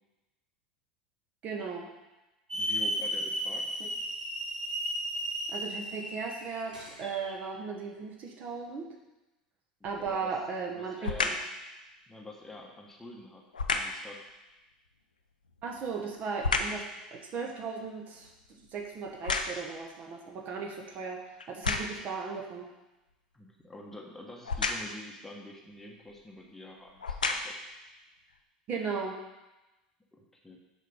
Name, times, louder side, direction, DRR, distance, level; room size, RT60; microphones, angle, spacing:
voice 1, 1.4-1.9 3.8-3.9 5.5-8.9 9.8-11.1 15.6-16.9 17.1-21.2 21.5-22.7 28.7-29.2, right 5 dB, 40° right, 0 dB, 1.2 m, -36 dB
voice 2, 2.5-3.7 9.8-10.3 10.7-11.3 12.1-13.4 13.7-14.2 23.3-27.5 30.1-30.6, left 2 dB, 10° left, -1 dB, 1.1 m, -47 dB
Hiss / Alarm, 2.5-7.3, equal, 85° right, 1.3 m, -34 dB
sound 1, 9.9-10.3 11.0-11.5 13.5-14.0 15.5-16.9 17.4-19.9 20.5-20.6 21.4-22.1 24.4-25.0 26.1-26.2 26.9-27.7 28.3-28.4, left 4 dB, 80° left, 0.5 m, -32 dB
6.5 x 4.7 x 5.4 m, 1.0 s
figure-of-eight pair, 80°, 4 cm